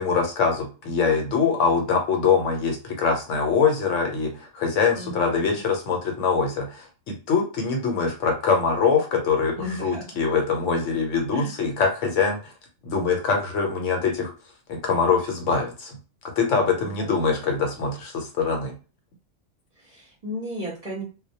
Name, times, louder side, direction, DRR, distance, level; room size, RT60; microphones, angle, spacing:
voice 1, 0.0-12.5 12.8-14.3 14.7-16.0 16.4-18.7, left 5 dB, 70° left, 3 dB, 0.9 m, -23 dB
voice 2, 4.9-5.6 9.6-10.0 11.3-11.5 16.8-17.2 19.8-21.0, equal, 40° right, -5 dB, 0.6 m, -35 dB
2.2 x 2.0 x 2.7 m, 0.34 s
omnidirectional pair, 1.3 m